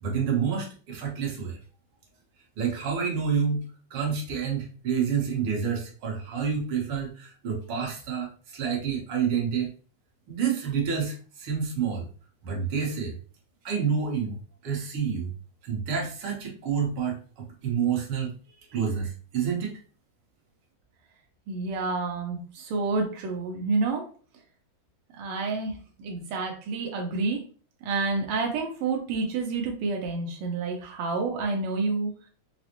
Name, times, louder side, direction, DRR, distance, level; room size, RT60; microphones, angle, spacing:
voice 1, 0.0-1.6 2.6-3.6 3.9-9.7 10.3-12.1 12.4-13.2 13.6-14.4 14.6-15.3 15.6-18.3 18.7-19.7, right 7 dB, 65° right, -1 dB, 1.4 m, -28 dB
voice 2, 21.5-24.0 25.2-27.4 27.8-32.1, right 3 dB, 90° right, 1 dB, 1.2 m, -29 dB
5.0 x 2.0 x 2.8 m, 0.40 s
omnidirectional pair, 3.3 m